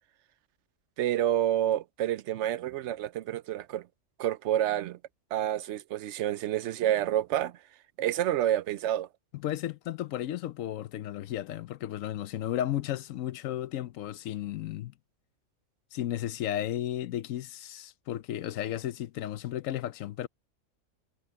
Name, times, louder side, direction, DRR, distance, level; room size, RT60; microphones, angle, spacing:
voice 1, 1.0-3.9 4.2-5.0 5.3-7.5 8.0-9.1, right 12 dB, 70° right, 0.8 m, -28 dB
voice 2, 9.3-14.9 15.9-20.3, left 12 dB, 80° left, 1.0 m, -34 dB
omnidirectional pair, 1.4 m